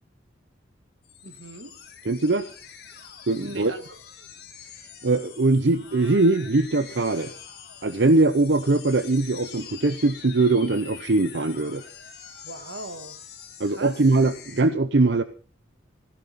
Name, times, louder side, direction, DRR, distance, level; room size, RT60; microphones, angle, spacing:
sound 1, 1.0-14.6, left 8 dB, 55° left, 3.0 m, -45 dB
voice 1, 1.2-1.8 3.4-4.0 12.4-13.2 13.6-14.0, right 2 dB, 90° right, 1.7 m, -39 dB
voice 2, 2.1-2.5 3.3-3.7 5.0-7.3 7.8-11.8 13.6-15.2, right 2 dB, 70° right, 0.7 m, -21 dB
16.0 x 16.0 x 4.1 m
head